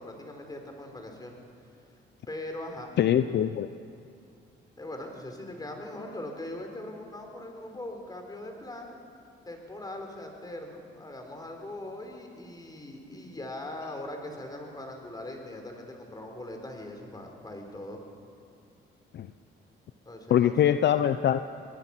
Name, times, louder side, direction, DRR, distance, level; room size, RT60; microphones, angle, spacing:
voice 1, 0.0-1.4 2.3-2.9 4.8-9.0 9.4-18.0 20.1-20.8, left 1 dB, 20° left, 3 dB, 4.1 m, -41 dB
voice 2, 3.0-3.7 19.1-19.3 20.3-21.4, left 10 dB, 60° left, 11 dB, 0.6 m, -23 dB
22.0 x 19.5 x 6.0 m, 2.5 s
cardioid pair, 90°, 20 cm